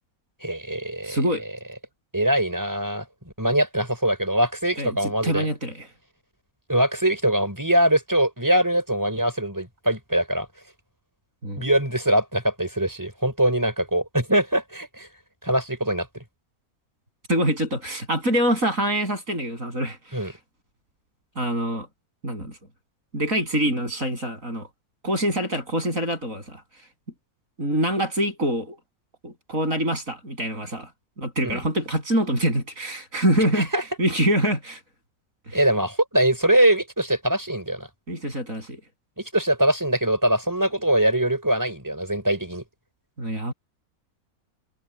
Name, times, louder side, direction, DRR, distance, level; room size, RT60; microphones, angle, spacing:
voice 1, 0.4-1.2 2.1-3.0 3.4-5.5 6.7-10.5 11.6-15.1 15.4-16.2 20.1-20.3 31.4-31.6 33.5-33.8 35.5-37.9 39.2-42.6, right 1 dB, 10° right, 4.8 m, -22 dB
voice 2, 1.0-1.4 4.8-5.9 11.4-11.6 17.3-20.3 21.3-21.9 22.2-22.6 23.1-24.7 25.0-26.6 27.6-28.8 29.2-30.9 31.2-33.7 34.0-34.8 35.5-35.6 38.1-38.8 43.2-43.5, right 1 dB, 60° right, 8.4 m, -25 dB
omnidirectional pair, 1.6 m